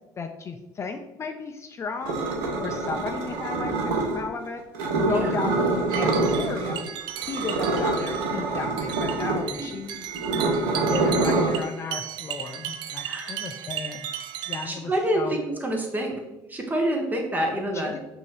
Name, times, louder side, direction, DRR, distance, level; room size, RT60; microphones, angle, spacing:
voice 1, 0.2-2.2 2.6-4.6 5.1-5.6 5.9-6.8 7.3-10.1 10.9-14.1 14.5-15.4 17.8-18.0, left 5 dB, 35° left, 5 dB, 0.4 m, -34 dB
sound 1, 2.0-4.2 4.7-6.8 7.1-11.6, right 3 dB, 80° right, 0.8 m, -25 dB
sound 2, 5.9-14.7, right 10 dB, 65° right, 0.4 m, -36 dB
voice 2, 13.1-13.4 14.6-16.1 16.5-18.0, right 1 dB, 20° right, 2 dB, 1.0 m, -27 dB
5.2 x 2.7 x 3.3 m, 0.97 s
supercardioid pair, 90°, 8 cm